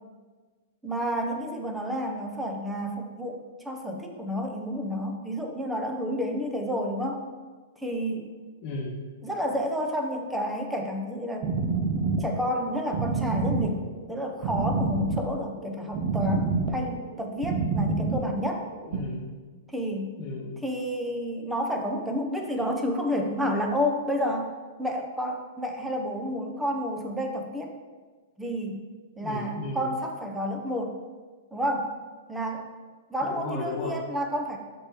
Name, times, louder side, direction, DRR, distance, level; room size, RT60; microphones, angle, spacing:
voice 1, 0.8-7.3 7.8-8.3 9.2-11.5 12.2-13.8 14.1-18.7 19.7-20.1 20.6-24.5 24.8-27.7 28.4-28.9 29.2-31.0 31.5-32.0 32.3-32.7 33.1-34.6, equal, 5° right, 2 dB, 0.8 m, -30 dB
voice 2, 8.6-9.0 18.8-19.3 20.2-20.6 29.2-29.9 33.2-34.0, left 3 dB, 45° left, -6 dB, 1.2 m, -34 dB
sound 1, 11.4-19.0, right 3 dB, 40° right, 0.7 m, -28 dB
6.9 x 3.3 x 4.5 m, 1.4 s
hypercardioid pair, 135°, 0 cm